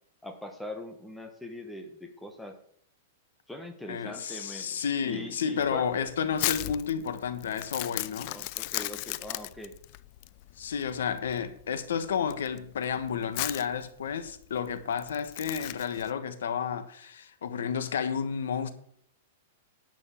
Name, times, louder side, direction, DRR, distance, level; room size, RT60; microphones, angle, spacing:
voice 1, 0.2-2.6 3.5-5.9 8.3-9.7, left 1 dB, 5° left, 1.2 m, -42 dB
voice 2, 3.9-8.4 10.6-18.7, left 7 dB, 85° left, 1.3 m, -31 dB
Crumpling crinkling, 5.6-16.1, left 19 dB, 40° left, 0.4 m, -36 dB
10.5 x 5.4 x 7.1 m
supercardioid pair, 165°, 0 cm